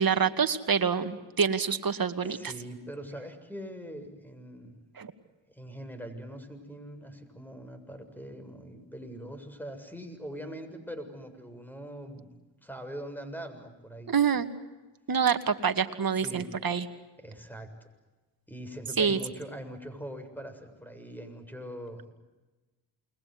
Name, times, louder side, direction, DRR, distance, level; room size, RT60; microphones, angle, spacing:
voice 1, 0.0-2.5 5.0-5.1 14.1-14.5 15.1-16.9 19.0-19.2, right 6 dB, 45° right, 9 dB, 2.4 m, -26 dB
voice 2, 2.2-4.8 5.5-12.3 12.6-14.2 16.2-16.5 17.2-17.7 18.5-22.1, equal, 5° left, 9 dB, 7.2 m, -42 dB
29.0 x 23.0 x 8.0 m, 1.2 s
supercardioid pair, 50°, 48 cm